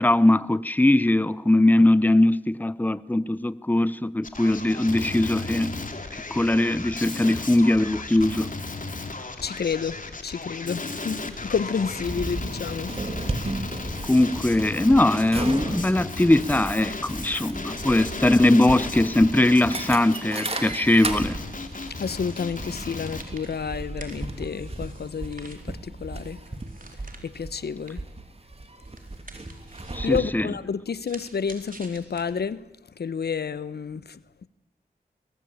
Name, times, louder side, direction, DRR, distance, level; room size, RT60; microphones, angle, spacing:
voice 1, 0.0-5.7 6.3-8.5 14.1-21.4 29.9-30.5, left 1 dB, 10° left, 0.8 m, -20 dB
Male speech man speaking, 4.2-23.2, left 3 dB, 55° left, 2.8 m, -35 dB
voice 2, 9.4-12.9 22.0-26.4 27.2-28.0 30.0-32.6 33.0-34.2, left 6 dB, 80° left, 0.9 m, -30 dB
sound 1, 11.8-30.2, right 2 dB, 40° right, 3.0 m, -35 dB
sound 2, 20.8-32.7, right 3 dB, 55° right, 4.2 m, -49 dB
22.0 x 21.0 x 8.8 m
cardioid pair, 55°, 17 cm